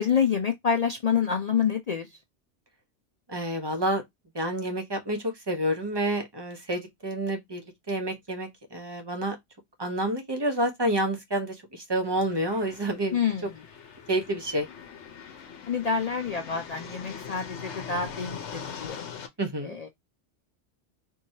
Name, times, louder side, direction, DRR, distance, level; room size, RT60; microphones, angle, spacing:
voice 1, 0.0-2.1 13.1-13.6 15.7-19.0 19.6-19.9, left 7 dB, 50° left, 0.5 m, -27 dB
voice 2, 3.3-4.0 4.3-7.6 7.9-9.4 9.8-13.2 14.1-14.7 19.4-19.8, right 1 dB, 25° right, 1.0 m, -29 dB
sound 1, 12.0-19.3, left 7 dB, 75° left, 1.0 m, -42 dB
4.5 x 3.0 x 2.7 m
omnidirectional pair, 1.2 m